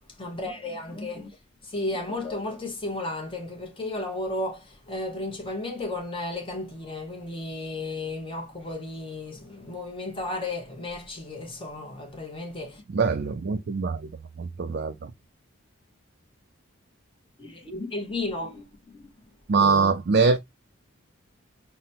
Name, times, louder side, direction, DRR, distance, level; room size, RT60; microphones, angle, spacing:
voice 1, 0.2-1.3 1.6-12.8 17.4-18.7 18.9-19.1, left 2 dB, 25° left, 0.9 m, -33 dB
voice 2, 12.9-14.1 14.4-15.1 19.5-20.4, right 4 dB, 50° right, 0.4 m, -23 dB
5.8 x 2.1 x 2.7 m
head